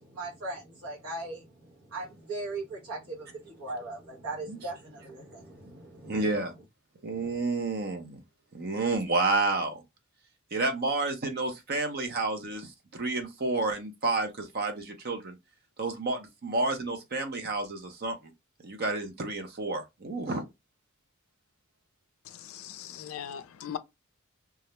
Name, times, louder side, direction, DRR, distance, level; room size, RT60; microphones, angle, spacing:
voice 1, 0.0-1.5 1.9-6.2 7.1-7.3, right 2 dB, 75° right, 0.9 m, -39 dB
voice 2, 6.0-6.5 7.0-8.2 8.5-9.8 10.5-15.4 15.8-18.3 18.6-20.5, right 3 dB, 50° right, 0.6 m, -30 dB
voice 3, 22.4-23.8, left 9 dB, 70° left, 0.3 m, -39 dB
2.3 x 2.1 x 2.8 m
head